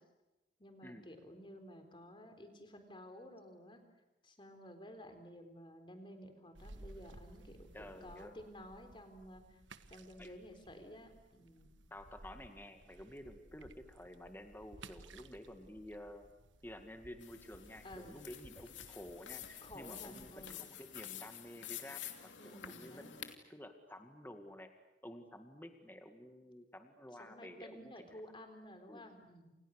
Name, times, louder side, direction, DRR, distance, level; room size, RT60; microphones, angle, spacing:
voice 1, 0.6-3.8 4.2-9.6 9.9-11.8 17.8-18.2 19.6-20.6 22.4-23.2 27.2-29.5, equal, 25° left, 6 dB, 3.9 m, -53 dB
sound 1, 6.6-20.6, right 2 dB, 85° right, 1.5 m, -58 dB
voice 2, 7.7-8.3 10.2-10.3 11.9-16.3 16.6-24.7 25.0-28.2 28.9-29.0, left 1 dB, 10° left, 6 dB, 2.1 m, -51 dB
sound 2, 17.2-23.3, left 10 dB, 85° left, 2.7 m, -49 dB
29.5 x 28.5 x 6.6 m, 1.0 s
head